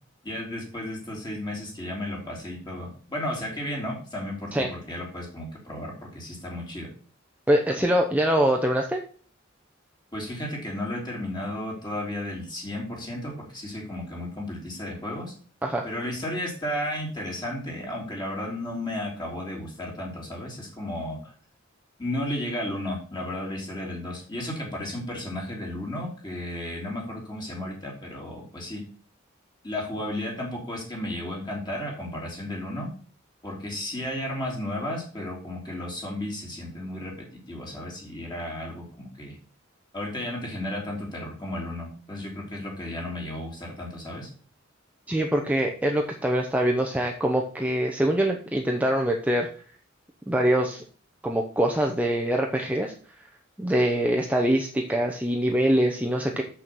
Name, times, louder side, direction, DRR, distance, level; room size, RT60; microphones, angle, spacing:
voice 1, 0.2-6.9 10.1-15.3 15.8-21.3 22.0-28.8 29.6-32.9 33.4-39.3 39.9-44.3, left 1 dB, 20° left, -2 dB, 3.4 m, -33 dB
voice 2, 7.5-9.0 15.6-15.9 45.1-49.5 50.3-50.8 51.2-52.9 53.6-56.4, right 1 dB, 5° right, 1 dB, 0.7 m, -24 dB
7.1 x 6.2 x 6.2 m, 0.43 s
head